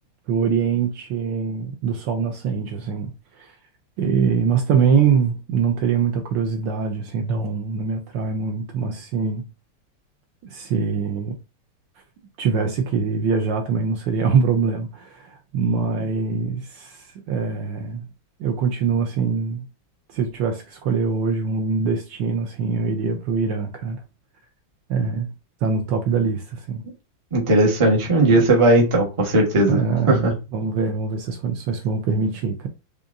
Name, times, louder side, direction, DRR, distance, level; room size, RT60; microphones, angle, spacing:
voice 1, 0.3-3.5 4.0-9.5 10.4-11.4 12.4-18.1 18.4-19.7 20.1-24.0 24.9-25.3 25.6-26.9 29.7-32.7, right 5 dB, 75° right, 1.1 m, -23 dB
voice 2, 27.3-29.8 30.1-30.3, right 2 dB, 45° right, 0.4 m, -17 dB
5.3 x 2.4 x 2.4 m
omnidirectional pair, 2.4 m